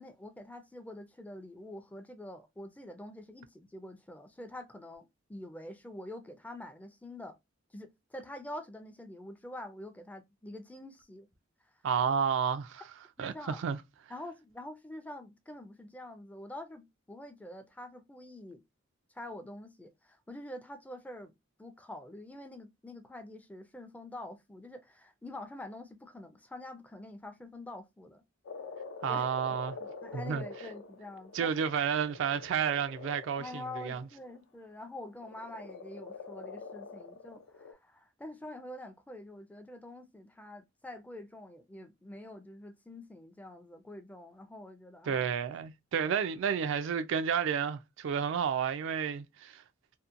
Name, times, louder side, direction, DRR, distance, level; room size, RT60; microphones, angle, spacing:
voice 1, 0.0-7.4 7.7-11.3 13.2-13.6 14.1-18.6 19.1-21.3 21.6-28.2 29.1-29.3 29.8-31.6 33.4-45.3 46.0-46.1, left 1 dB, 10° left, 0.4 m, -46 dB
voice 2, 11.8-12.8 13.2-13.8 29.0-29.8 30.1-30.4 31.3-34.1 45.1-49.6, right 7 dB, 65° right, 0.3 m, -31 dB
Frog, 28.5-34.4 35.2-37.7, left 4 dB, 75° left, 0.5 m, -46 dB
2.7 x 2.1 x 2.4 m
head